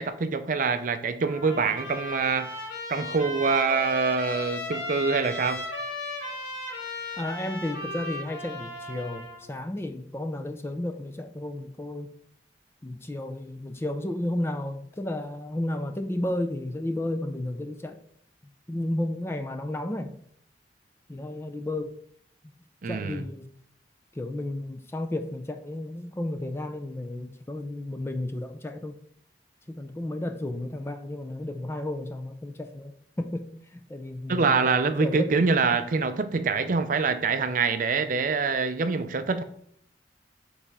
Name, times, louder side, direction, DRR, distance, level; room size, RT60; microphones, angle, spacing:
voice 1, 0.0-2.5 2.9-5.6 22.8-23.2 34.3-39.4, right 4 dB, 50° right, 0.5 m, -25 dB
Trumpet, 1.2-9.4, left 1 dB, 80° left, 2.3 m, -36 dB
voice 2, 7.2-12.1 12.8-18.0 18.7-20.1 21.1-21.9 22.9-23.5 24.1-29.0 29.7-35.3, left 1 dB, 15° left, 0.4 m, -33 dB
5.6 x 4.1 x 4.7 m
head